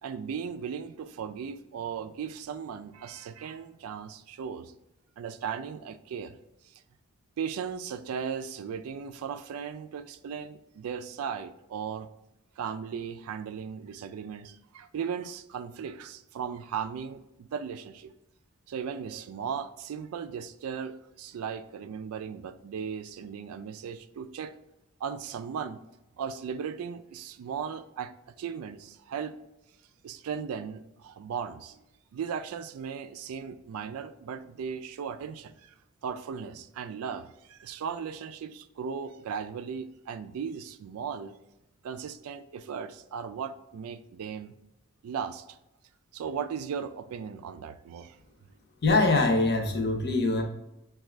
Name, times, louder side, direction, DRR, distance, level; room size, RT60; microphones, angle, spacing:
voice 1, 0.0-4.7 5.2-6.4 6.7-6.8 7.4-12.1 12.6-18.1 18.7-24.6 25.0-25.8 26.2-29.4 30.0-31.8 32.1-35.7 36.0-41.4 41.8-44.5 45.0-45.6 46.1-48.2, right 7 dB, 85° right, 11 dB, 0.3 m, -37 dB
voice 2, 48.8-50.4, left 3 dB, 50° left, 2 dB, 0.7 m, -23 dB
6.0 x 2.4 x 3.2 m, 0.89 s
head